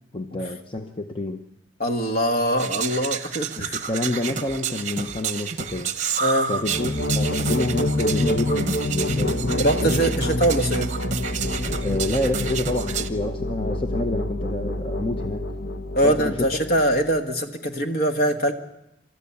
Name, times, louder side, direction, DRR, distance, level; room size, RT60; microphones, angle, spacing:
voice 1, 0.1-1.4 3.6-5.9 6.5-9.5 9.8-10.0 11.8-15.5 16.0-16.5, left 2 dB, 25° left, 5 dB, 0.8 m, -28 dB
voice 2, 1.8-3.8 6.2-6.5 9.6-10.9 15.9-18.5, right 1 dB, 50° left, 6 dB, 1.6 m, -23 dB
sound 1, 2.6-13.1, right 6 dB, 35° right, 1.0 m, -30 dB
sound 2, 6.6-17.2, left 1 dB, 65° left, 1.1 m, -27 dB
28.5 x 13.5 x 7.1 m, 0.88 s
head